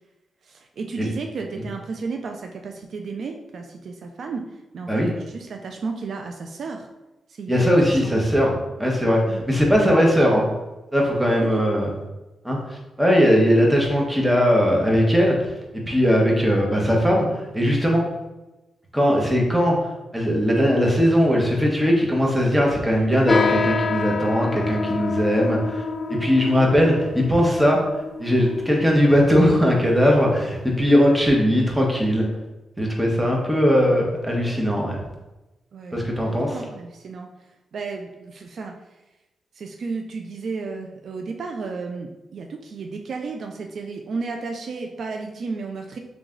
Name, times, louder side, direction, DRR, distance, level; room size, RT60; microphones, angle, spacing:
voice 1, 0.4-4.5 4.7-6.9 7.3-8.1 9.3-9.4 11.4-11.6 35.7-37.3 37.7-38.8 39.6-46.0, right 4 dB, 70° right, 3 dB, 0.4 m, -33 dB
voice 2, 7.5-10.5 10.9-11.9 12.4-15.4 15.9-18.0 18.9-19.8 20.1-25.8 26.1-27.8 28.2-32.2 32.8-35.0 35.9-36.6, equal, 10° right, -1 dB, 1.2 m, -19 dB
sound 1, 23.3-31.1, left 4 dB, 45° left, 0.7 m, -28 dB
3.4 x 3.2 x 3.7 m, 1.0 s
cardioid pair, 60°, 0 cm